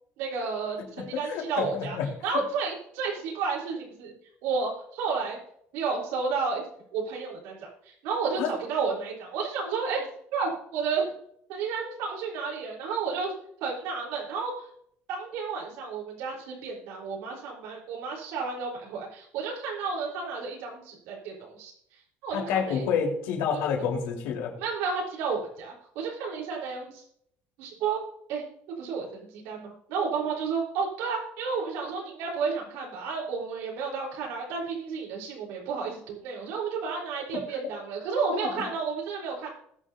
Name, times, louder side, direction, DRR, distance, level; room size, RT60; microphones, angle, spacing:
voice 1, 0.2-2.0 2.2-4.1 4.4-5.4 5.7-6.7 6.9-7.7 8.0-11.1 11.5-13.3 13.6-14.7 15.1-21.7 22.2-22.8 23.5-23.6 24.6-27.0 27.6-28.0 28.3-28.4 28.8-39.5, right 5 dB, 80° right, -3 dB, 4.1 m, -31 dB
voice 2, 1.3-2.1 8.4-8.5 22.3-24.5 38.4-38.5, left 7 dB, 90° left, 0 dB, 4.0 m, -28 dB
20.0 x 7.4 x 2.8 m, 0.67 s
cardioid pair, 165°, 5 cm